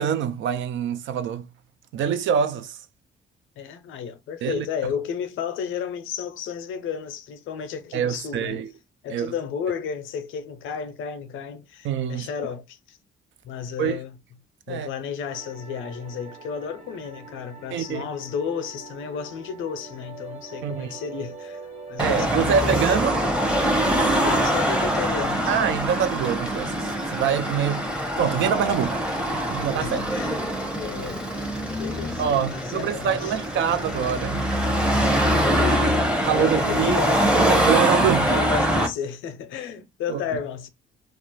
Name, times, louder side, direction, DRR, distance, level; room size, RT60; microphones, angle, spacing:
voice 1, 0.0-1.5 1.9-2.8 4.4-4.7 7.9-8.7 9.1-9.3 11.8-12.3 13.8-14.0 14.7-14.9 17.7-18.1 20.6-20.9 22.0-23.2 25.5-27.8 28.2-29.0 29.3-30.0 32.2-34.5 36.3-38.4 40.1-40.2, right 8 dB, 70° right, 0.4 m, -25 dB
voice 2, 3.6-8.6 9.0-13.0 13.4-14.2 14.7-21.6 21.9-23.0 24.2-25.5 29.8-30.5 30.7-31.5 31.8-32.2 32.5-33.4 33.7-33.8 35.2-37.6 38.0-40.7, left 7 dB, 80° left, 0.5 m, -33 dB
sound 1, 15.3-25.1, right 2 dB, 45° right, 1.2 m, -42 dB
Car passing by / Traffic noise roadway noise / Engine, 22.0-38.9, equal, 5° right, 0.7 m, -24 dB
2.3 x 2.0 x 2.9 m
cardioid pair, 90°, 20 cm